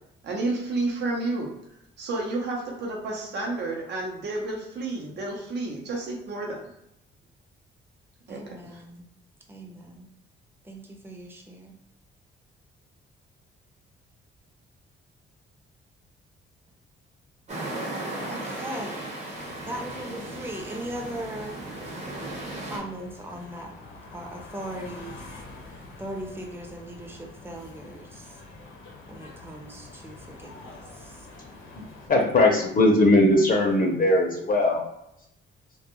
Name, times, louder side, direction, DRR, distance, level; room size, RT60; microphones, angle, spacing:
voice 1, 0.2-1.5 2.0-6.6 8.3-8.7, right 2 dB, 60° right, -1 dB, 0.7 m, -30 dB
voice 2, 8.3-9.1 9.5-10.1 10.6-11.8 18.3-21.6 22.6-23.7 24.1-25.4 25.7-28.4 29.1-31.3, right 1 dB, 10° right, 1 dB, 0.6 m, -39 dB
sound 1, 17.5-22.8, right 1 dB, 35° right, 0.9 m, -36 dB
sound 2, 19.3-32.1, left 3 dB, 75° left, 0.8 m, -46 dB
voice 3, 31.7-34.8, left 1 dB, 45° left, 1 dB, 0.6 m, -20 dB
2.2 x 2.1 x 2.9 m, 0.82 s
cardioid pair, 90°, 20 cm